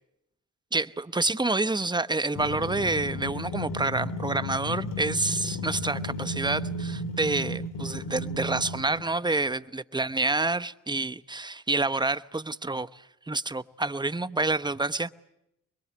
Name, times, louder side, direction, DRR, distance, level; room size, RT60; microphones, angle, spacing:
voice 1, 0.7-15.1, right 2 dB, 15° right, 0.9 m, -28 dB
sound 1, 2.4-9.1, left 1 dB, 75° left, 2.6 m, -34 dB
25.0 x 22.5 x 8.6 m
cardioid pair, 65°, 33 cm